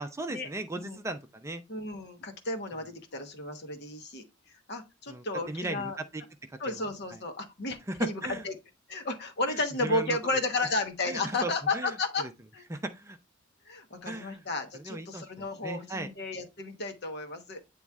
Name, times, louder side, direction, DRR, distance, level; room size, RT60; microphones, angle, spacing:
voice 1, 0.0-1.6 5.1-6.2 6.7-6.8 7.9-8.0 8.2-8.4 9.8-10.2 11.1-11.9 12.2-12.3 12.7-13.2 14.1-14.4 14.7-15.2 15.6-16.1, right 2 dB, 15° right, 0.5 m, -37 dB
voice 2, 1.7-4.2 4.7-6.0 6.6-8.5 8.9-12.2 12.5-12.6 13.7-17.6, left 2 dB, 60° left, 1.1 m, -33 dB
8.6 x 3.1 x 3.5 m
head